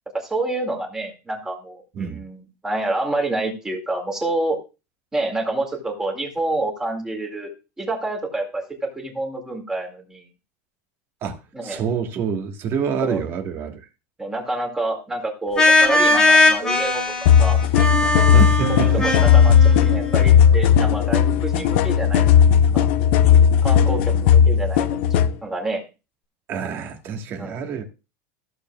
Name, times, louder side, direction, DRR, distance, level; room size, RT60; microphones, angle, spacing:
voice 1, 0.1-4.6 5.1-7.5 7.8-10.2 11.5-11.8 13.0-13.2 14.2-17.0 17.4-17.6 18.7-22.3 22.7-22.9 23.6-25.0 25.4-25.8 27.4-27.6, right 2 dB, 10° right, 2.2 m, -28 dB
voice 2, 11.2-13.8 18.3-19.1 26.5-27.8, right 6 dB, 35° right, 1.4 m, -27 dB
sound 1, 15.6-20.2, left 2 dB, 10° left, 2.0 m, -19 dB
sound 2, 17.3-25.3, left 8 dB, 60° left, 0.6 m, -16 dB
sound 3, 18.6-22.3, right 7 dB, 90° right, 2.8 m, -38 dB
14.5 x 6.9 x 2.3 m
supercardioid pair, 165°, 7 cm